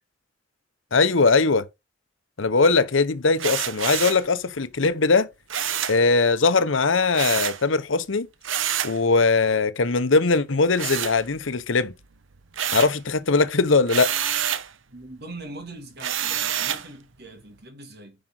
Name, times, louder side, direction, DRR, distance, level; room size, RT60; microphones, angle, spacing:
voice 1, 0.9-1.6 2.4-5.3 5.9-8.3 8.8-11.9 12.7-14.1, left 4 dB, 80° left, 0.9 m, -20 dB
sound 1, 3.4-4.3 5.5-6.0 7.1-7.6 8.4-9.0 10.8-11.6 12.0-13.0 13.9-14.7 16.0-16.9, right 9 dB, 85° right, 0.9 m, -27 dB
voice 2, 14.9-18.2, right 2 dB, 55° right, 2.8 m, -41 dB
10.0 x 5.1 x 4.4 m
head